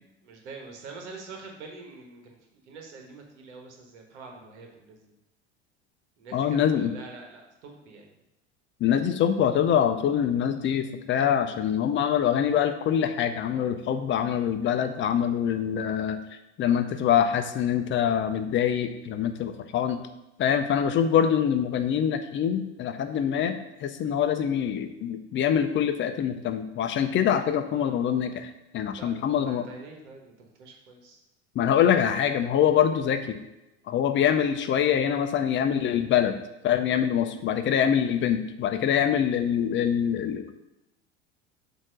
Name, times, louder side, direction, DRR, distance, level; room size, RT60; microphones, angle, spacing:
voice 1, 0.2-5.1 6.2-8.1 27.7-27.9 28.9-31.2, right 4 dB, 70° right, 2 dB, 1.3 m, -45 dB
voice 2, 6.3-6.9 8.8-16.2 16.6-20.0 20.4-29.6 31.5-33.4 33.9-36.4 36.6-40.5, left 9 dB, 35° left, 9 dB, 0.7 m, -24 dB
7.4 x 2.9 x 5.0 m, 0.94 s
hypercardioid pair, 80°, 36 cm